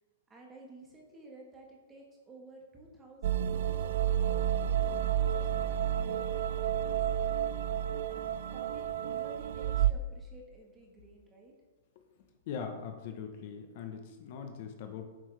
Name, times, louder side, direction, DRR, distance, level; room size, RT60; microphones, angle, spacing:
voice 1, 0.3-7.0 8.1-11.5, right 2 dB, 10° right, 0 dB, 1.4 m, -54 dB
sound 1, 3.2-9.9, right 10 dB, 55° right, 0.4 m, -30 dB
voice 2, 12.5-15.1, left 6 dB, 40° left, 5 dB, 1.0 m, -41 dB
10.0 x 7.6 x 3.4 m, 1.3 s
supercardioid pair, 175°, 0 cm